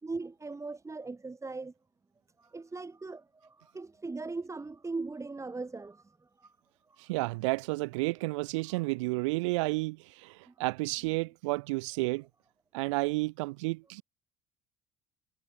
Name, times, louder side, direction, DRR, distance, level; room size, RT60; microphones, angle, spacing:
voice 1, 0.0-1.7 2.4-6.1 6.4-6.5 10.5-10.6, right 3 dB, 20° right, 5.2 m, -39 dB
voice 2, 7.1-12.3 12.7-14.0, right 24 dB, 85° right, 1.0 m, -31 dB
supercardioid pair, 75°, 15 cm